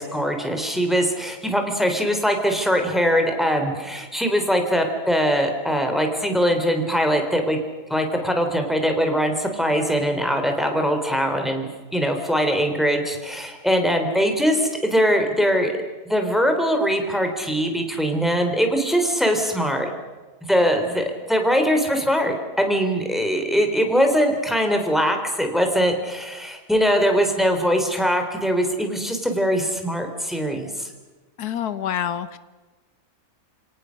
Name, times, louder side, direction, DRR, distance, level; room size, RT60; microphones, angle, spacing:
voice 1, 0.0-7.6 7.9-15.7 16.1-19.9 20.5-30.9, equal, ahead, 4 dB, 3.4 m, -22 dB
voice 2, 31.4-32.4, left 9 dB, 90° left, 13 dB, 1.5 m, -27 dB
29.0 x 18.0 x 6.5 m, 1.3 s
omnidirectional pair, 1.6 m